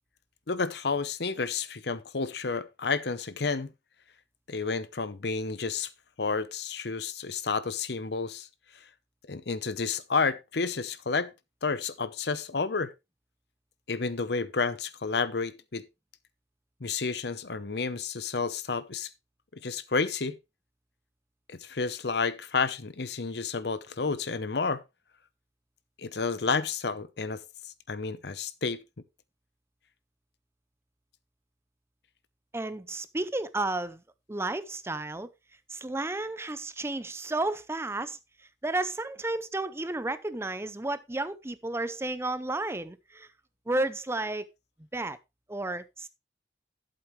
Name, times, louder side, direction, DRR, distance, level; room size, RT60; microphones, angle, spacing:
voice 1, 0.5-3.7 4.5-5.9 6.2-8.5 9.3-11.3 11.6-12.9 13.9-15.8 16.8-19.1 19.6-20.4 21.5-24.8 26.0-27.4 27.9-28.8, left 4 dB, 65° left, 0.8 m, -30 dB
voice 2, 32.5-34.0 34.3-35.3 35.7-38.2 38.6-43.3 43.7-44.5 44.9-45.2 45.5-46.1, right 2 dB, 15° right, 0.5 m, -32 dB
12.0 x 7.9 x 3.2 m
head